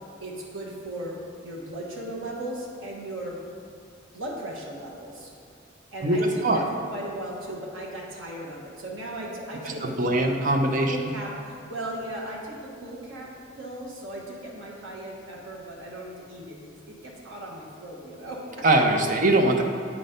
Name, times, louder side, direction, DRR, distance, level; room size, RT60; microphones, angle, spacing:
voice 1, 0.2-1.2 1.4-3.4 4.1-5.3 5.9-10.4 10.8-18.7, right 1 dB, 85° right, -3 dB, 1.3 m, -37 dB
voice 2, 6.0-6.6 9.8-11.0 18.6-19.6, right 2 dB, 40° right, 3 dB, 0.6 m, -22 dB
8.6 x 4.2 x 5.1 m, 2.4 s
head